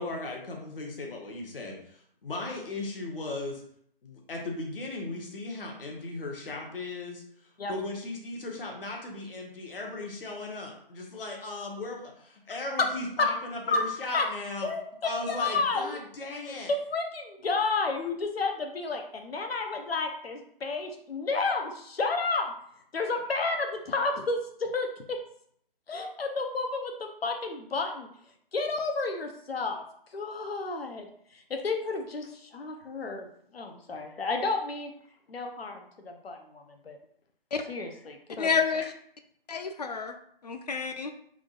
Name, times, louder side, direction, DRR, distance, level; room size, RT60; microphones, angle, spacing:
voice 1, 0.0-3.6 4.0-7.2 7.7-14.7 15.0-16.7, left 2 dB, 70° left, 0 dB, 1.2 m, -37 dB
voice 2, 14.6-16.0 16.5-22.5 22.9-25.2 25.9-28.1 28.5-29.8 30.1-31.1 31.3-33.3 33.5-34.9 35.3-37.0 37.7-38.5, left 3 dB, 85° left, 4 dB, 0.9 m, -31 dB
voice 3, 38.4-38.9 39.5-40.2 40.4-41.1, left 6 dB, 45° left, 6 dB, 0.4 m, -29 dB
3.7 x 2.5 x 3.7 m, 0.66 s
hypercardioid pair, 165°, 29 cm